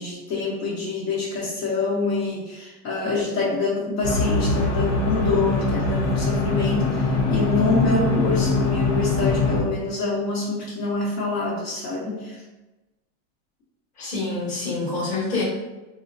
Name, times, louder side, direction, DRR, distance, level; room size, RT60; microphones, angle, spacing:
voice 1, 0.0-12.4, left 3 dB, 55° left, -6 dB, 1.1 m, -26 dB
sound 1, 4.0-9.6, left 2 dB, 85° left, 1.0 m, -22 dB
voice 2, 14.0-15.4, left 3 dB, 20° left, -8 dB, 1.1 m, -26 dB
3.8 x 2.1 x 2.6 m, 1.1 s
supercardioid pair, 155°, 40 cm